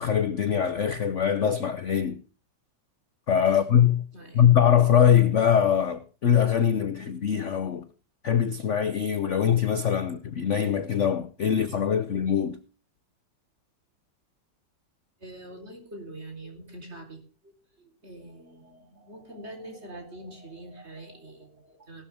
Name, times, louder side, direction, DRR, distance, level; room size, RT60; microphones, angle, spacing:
voice 1, 0.0-2.2 3.3-4.1 4.3-7.8 8.2-12.6, left 8 dB, 55° left, 0.9 m, -22 dB
voice 2, 4.1-4.5 10.0-10.2 15.2-17.5 17.8-22.0, right 1 dB, 35° right, 4.2 m, -44 dB
17.5 x 13.0 x 3.5 m
omnidirectional pair, 2.0 m